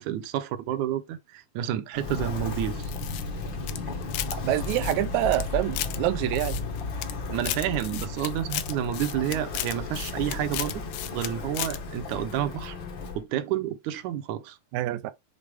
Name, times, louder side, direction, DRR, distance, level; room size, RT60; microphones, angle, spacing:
voice 1, 0.0-2.9 7.3-10.8 11.1-12.8 13.2-14.6, right 11 dB, 75° right, 1.9 m, -30 dB
Walk footsteps, 1.9-13.2, left 3 dB, 60° left, 1.2 m, -34 dB
sound 1, 2.8-4.4 4.6-6.0 6.3-7.1 7.4-11.3 11.5-11.8, left 15 dB, 80° left, 2.3 m, -34 dB
voice 2, 4.3-6.6 14.7-15.1, right 14 dB, 90° right, 1.6 m, -26 dB
6.8 x 4.2 x 3.4 m
omnidirectional pair, 4.1 m